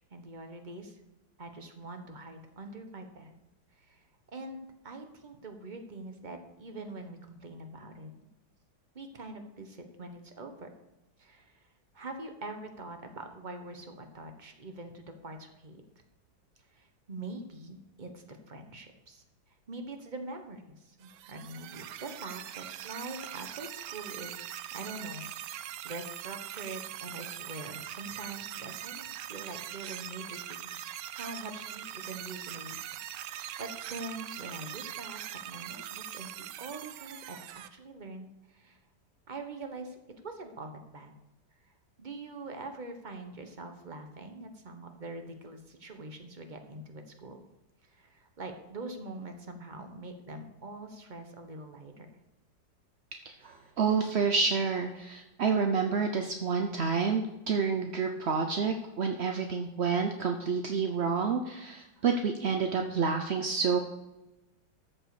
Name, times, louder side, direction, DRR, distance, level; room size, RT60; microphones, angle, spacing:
voice 1, 0.1-1.0 1.4-3.3 3.7-4.0 4.3-8.1 8.9-10.7 11.2-11.7 11.9-15.8 16.7-19.2 19.7-24.5 24.7-32.8 33.1-35.2 35.5-38.8 39.3-40.0 40.2-41.1 41.6-41.7 42.0-47.4 47.9-52.1, right 2 dB, 25° right, 5 dB, 1.3 m, -44 dB
sound 1, 21.0-37.7, right 12 dB, 75° right, 1.2 m, -42 dB
voice 2, 53.4-63.8, right 5 dB, 55° right, 4 dB, 0.7 m, -29 dB
13.5 x 7.5 x 5.0 m, 0.97 s
omnidirectional pair, 2.1 m